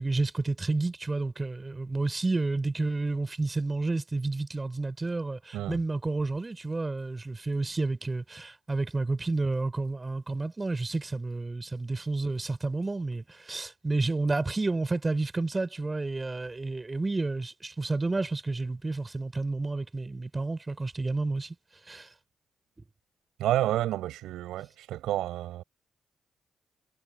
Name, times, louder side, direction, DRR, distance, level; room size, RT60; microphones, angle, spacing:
voice 1, 0.0-21.5 21.9-22.1, right 3 dB, 30° right, 4.4 m, -30 dB
voice 2, 23.4-25.6, right 13 dB, 75° right, 5.2 m, -29 dB
hypercardioid pair, 40°, 0 cm